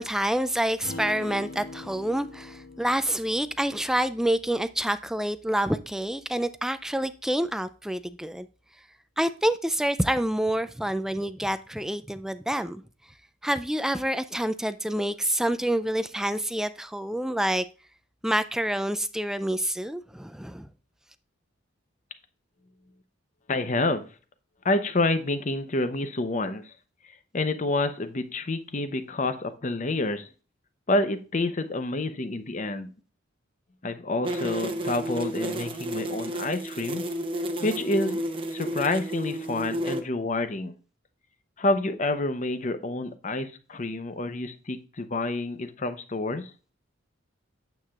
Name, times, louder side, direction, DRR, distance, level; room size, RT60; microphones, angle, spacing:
voice 1, 0.0-8.5 9.2-12.8 13.4-17.7 18.2-20.7, right 1 dB, 5° right, 0.3 m, -27 dB
Acoustic guitar, 0.8-5.5, left 2 dB, 80° left, 2.4 m, -43 dB
voice 2, 23.5-24.0 24.6-26.6 27.3-30.3 30.9-32.9 33.8-37.0 37.6-38.2 38.5-40.7 41.6-46.5, left 2 dB, 40° left, 0.7 m, -28 dB
sound 1, 34.2-40.0, right 1 dB, 25° right, 0.9 m, -31 dB
9.1 x 7.5 x 2.4 m
head